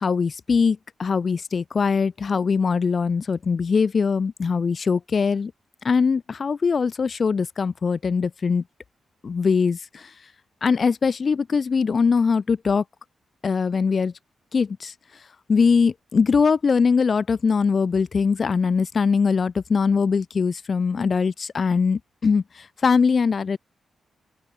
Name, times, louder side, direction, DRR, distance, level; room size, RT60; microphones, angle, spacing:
voice 1, 0.0-5.5 5.8-8.6 9.2-10.1 10.6-12.8 13.4-14.1 14.5-14.9 15.5-22.4 22.8-23.6, left 5 dB, 40° left, 0.5 m, -21 dB
open air
wide cardioid pair, 130°, 0 cm